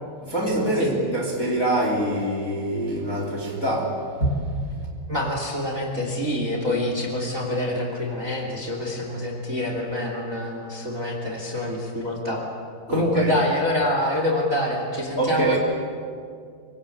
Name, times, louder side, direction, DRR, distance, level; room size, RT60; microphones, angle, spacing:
voice 1, 0.2-4.4 12.9-13.3 15.2-15.6, right 1 dB, 20° left, 3.1 m, -25 dB
voice 2, 5.1-12.4 12.9-15.6, left 1 dB, 20° right, 3.0 m, -26 dB
25.5 x 24.5 x 8.7 m
omnidirectional pair, 4.9 m